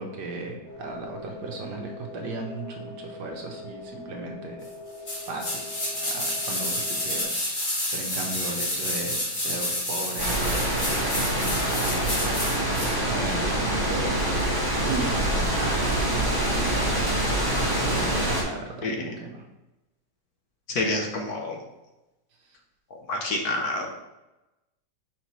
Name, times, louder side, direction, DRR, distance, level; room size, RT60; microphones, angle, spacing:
voice 1, 0.0-4.7 5.3-5.6 6.0-17.1 17.5-19.4, right 3 dB, 65° right, 2 dB, 1.5 m, -36 dB
sound 1, 0.6-7.2, left 2 dB, 20° left, 1.6 m, -42 dB
sound 2, 5.1-13.0 13.3-13.4, left 1 dB, 45° left, 2.4 m, -29 dB
sound 3, 10.2-18.4, right 1 dB, 10° right, 1.6 m, -25 dB
voice 2, 20.7-21.6 23.1-23.9, left 2 dB, 60° left, 2 dB, 1.2 m, -27 dB
6.0 x 5.7 x 3.1 m, 0.99 s
omnidirectional pair, 2.0 m